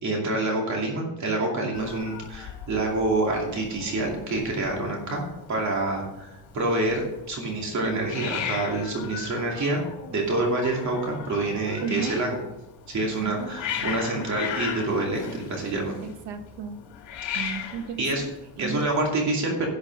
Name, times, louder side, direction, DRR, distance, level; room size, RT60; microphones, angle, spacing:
voice 1, 0.0-5.2 5.5-9.8 10.1-12.3 12.9-15.9 17.3-17.6 18.0-18.3 18.6-19.7, right 2 dB, 40° right, 0 dB, 2.6 m, -27 dB
Hiss, 1.7-19.1, left 8 dB, 80° left, 2.3 m, -38 dB
voice 2, 11.8-12.2 13.2-13.6 16.0-16.8 17.3-18.9, right 6 dB, 70° right, 8 dB, 1.3 m, -34 dB
11.5 x 6.2 x 6.4 m, 0.94 s
cardioid pair, 155°, 43 cm